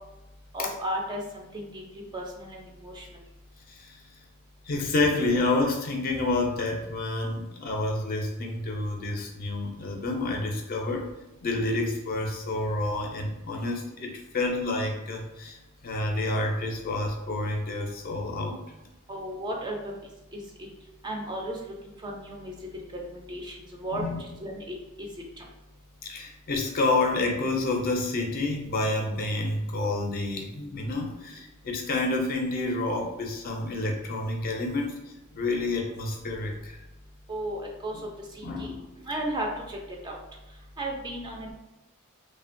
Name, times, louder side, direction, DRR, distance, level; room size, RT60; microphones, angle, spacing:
voice 1, 0.5-1.8 2.1-3.0 19.1-20.0 20.3-20.7 21.0-21.7 22.0-22.5 23.0-25.1 25.4-25.5 37.3-38.0 38.3-38.7 39.1-39.8 40.0-40.2 40.8-41.5, right 1 dB, 20° right, 0 dB, 0.4 m, -34 dB
voice 2, 4.7-11.1 11.4-15.6 15.8-18.6 23.9-24.2 26.0-35.0 35.3-36.8 38.4-38.8, left 2 dB, 40° left, 1 dB, 0.4 m, -29 dB
2.8 x 2.1 x 2.5 m, 0.99 s
head